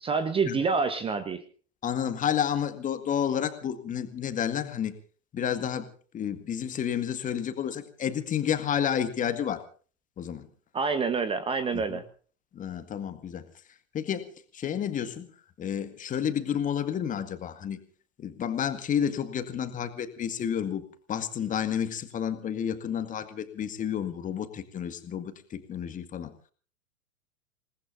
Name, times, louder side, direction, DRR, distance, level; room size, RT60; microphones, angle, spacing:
voice 1, 0.0-1.4 10.7-12.0, right 5 dB, 15° right, 12 dB, 1.1 m, -27 dB
voice 2, 1.8-4.9 5.3-9.6 10.2-10.5 11.7-12.0 12.5-13.5 13.9-14.3 14.5-15.3 15.6-17.8 18.2-26.3, left 9 dB, 20° left, 9 dB, 1.9 m, -30 dB
28.5 x 19.0 x 2.7 m, 0.41 s
figure-of-eight pair, 105°, 41 cm